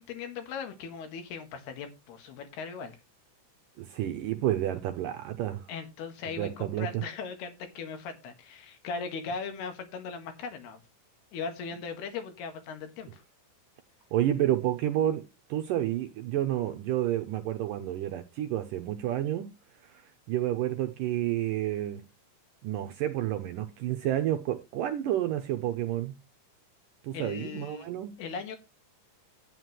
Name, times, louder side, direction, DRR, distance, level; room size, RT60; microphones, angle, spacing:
voice 1, 0.0-3.0 5.7-10.8 11.3-13.2 27.1-27.9 28.2-28.6, left 5 dB, 80° left, 3.7 m, -38 dB
voice 2, 3.8-5.7 6.4-7.0 14.1-19.5 19.8-22.0 22.6-26.2 27.0-28.2, right 12 dB, 80° right, 2.0 m, -30 dB
11.0 x 9.3 x 3.1 m
omnidirectional pair, 4.6 m